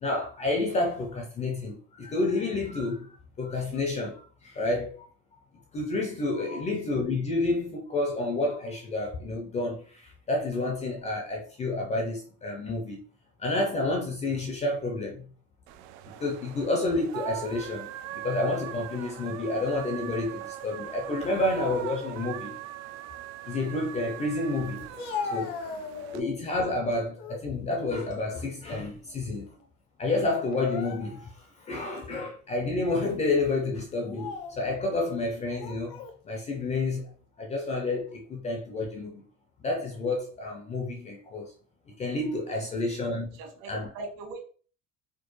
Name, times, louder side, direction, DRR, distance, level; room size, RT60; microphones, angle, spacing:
voice 1, 0.0-5.1 5.7-13.1 13.4-15.3 16.2-22.6 23.5-24.8 25.3-25.5 26.1-29.5 30.0-39.2 39.6-41.5 41.9-43.4 43.7-43.9, left 2 dB, 20° left, 0.4 m, -30 dB
sound 1, 15.7-26.2, right 13 dB, 90° right, 0.5 m, -41 dB
Speech, 24.8-26.4 26.9-27.5 27.9-29.2 29.4-29.6 30.4-31.4 32.0-32.1 32.9-33.1 33.9-34.6 35.5-36.2, left 5 dB, 75° left, 0.8 m, -38 dB
voice 2, 43.0-44.4, right 3 dB, 65° right, 1.4 m, -44 dB
4.3 x 2.5 x 3.0 m
cardioid pair, 165°, 37 cm